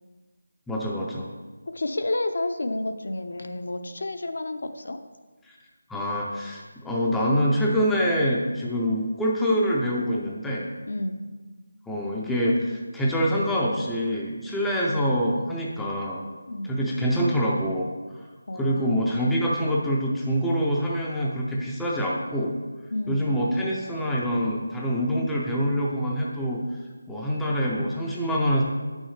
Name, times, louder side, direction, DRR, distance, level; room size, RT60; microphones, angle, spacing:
voice 1, 0.7-1.3 5.5-5.6 5.9-10.6 11.9-16.2 16.6-17.9 18.5-22.5 23.1-26.6 27.1-28.6, equal, 5° left, -5 dB, 0.4 m, -25 dB
voice 2, 1.7-5.0 10.8-11.2 16.5-16.7 18.5-19.0 22.9-23.2, left 2 dB, 65° left, 7 dB, 0.6 m, -30 dB
8.2 x 6.3 x 3.2 m, 1.3 s
figure-of-eight pair, 175°, 0 cm